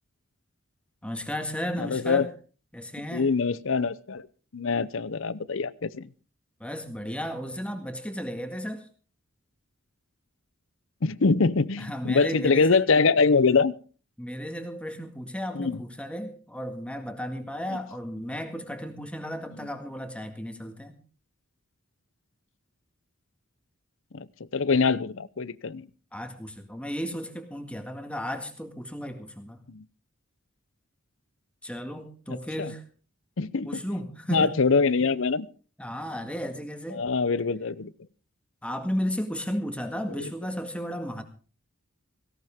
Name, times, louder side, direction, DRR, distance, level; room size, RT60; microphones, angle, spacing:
voice 1, 1.0-2.3 2.7-3.3 6.6-8.9 11.8-12.8 14.2-21.0 26.1-29.6 31.6-32.8 33.6-34.5 35.8-37.1 38.6-41.2, equal, 5° left, 6 dB, 1.8 m, -34 dB
voice 2, 1.8-2.3 3.1-4.3 4.5-6.1 11.0-13.7 15.5-15.8 24.1-24.3 24.5-25.9 29.7-29.8 32.3-32.7 33.4-33.8 34.3-35.5 36.9-37.9, left 4 dB, 65° left, 18 dB, 0.7 m, -24 dB
17.5 x 17.0 x 3.6 m, 0.38 s
head